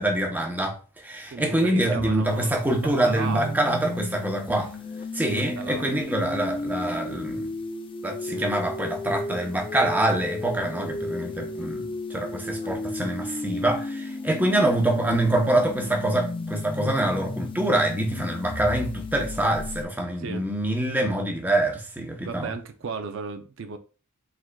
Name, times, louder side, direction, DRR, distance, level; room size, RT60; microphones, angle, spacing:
voice 1, 0.0-4.7 5.1-7.5 8.0-22.5, right 1 dB, 10° right, 0.7 m, -25 dB
voice 2, 1.3-3.6 4.5-4.7 5.3-5.9 8.3-8.5 20.2-20.4 22.2-23.8, right 5 dB, 60° right, 0.4 m, -35 dB
sound 1, 2.2-19.8, left 2 dB, 25° left, 0.4 m, -34 dB
4.9 x 3.7 x 2.2 m
head